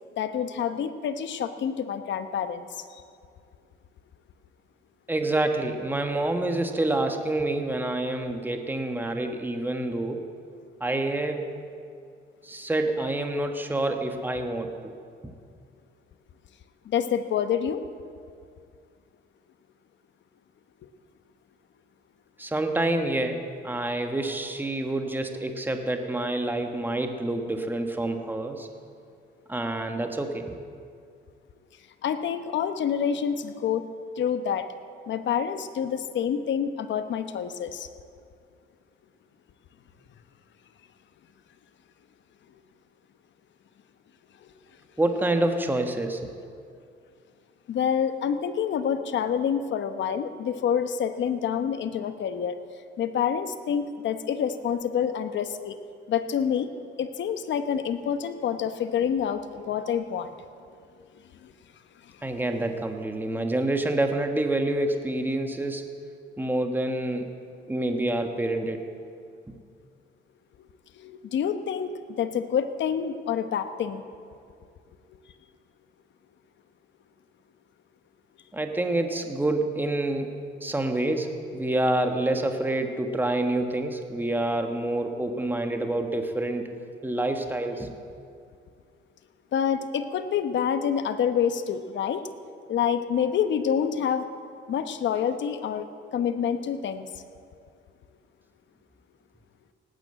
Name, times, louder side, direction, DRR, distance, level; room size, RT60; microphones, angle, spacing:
voice 1, 0.2-3.0 16.8-17.8 32.0-33.9 34.2-34.7 35.1-37.9 47.7-52.6 53.0-55.8 56.1-56.7 57.0-60.3 61.4-61.5 62.0-62.1 70.9-74.0 89.5-92.3 92.7-94.3 94.7-97.1, left 8 dB, 65° left, 10 dB, 1.0 m, -27 dB
voice 2, 5.1-10.2 10.8-11.4 12.4-14.7 22.4-28.7 29.5-30.4 45.0-46.3 62.2-65.8 66.4-67.3 67.7-68.9 69.5-69.6 78.5-80.3 80.6-86.7 87.0-87.9, right 1 dB, 10° right, 5 dB, 1.4 m, -27 dB
18.0 x 9.1 x 7.8 m, 2.3 s
cardioid pair, 90°, 20 cm